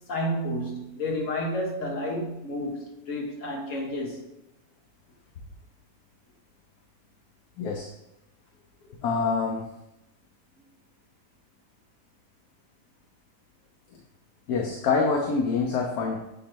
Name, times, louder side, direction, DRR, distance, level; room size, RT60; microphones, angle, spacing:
voice 1, 0.0-4.3, equal, 60° left, -1 dB, 1.6 m, -31 dB
voice 2, 7.6-7.9 9.0-9.7 14.5-16.2, left 4 dB, 85° left, 1 dB, 1.3 m, -26 dB
7.6 x 3.1 x 4.4 m, 0.89 s
omnidirectional pair, 1.6 m